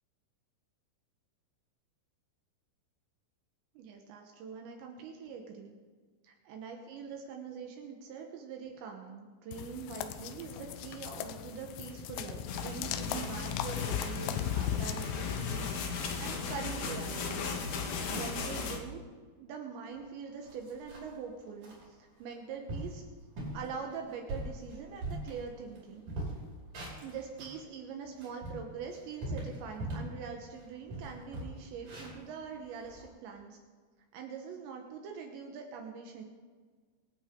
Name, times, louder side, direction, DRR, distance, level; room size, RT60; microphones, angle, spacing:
voice 1, 3.8-5.8 6.2-17.7 18.1-19.0 19.4-23.0 23.5-26.1 27.0-33.6 34.1-36.3, right 6 dB, 75° right, 2 dB, 3.4 m, -43 dB
sound 1, 9.5-15.7, left 11 dB, 90° left, 3.0 m, -37 dB
sound 2, 12.5-18.8, left 5 dB, 65° left, 2.2 m, -36 dB
sound 3, 20.0-20.1 20.4-21.2 21.6-21.8 22.3-22.4 22.7-23.0 23.4-23.7 24.1-25.8 26.1-27.6 28.0-30.2 30.5-30.6 30.9-33.1, right 1 dB, 45° right, 6.0 m, -40 dB
25.0 x 11.5 x 3.8 m, 1.5 s
omnidirectional pair, 5.3 m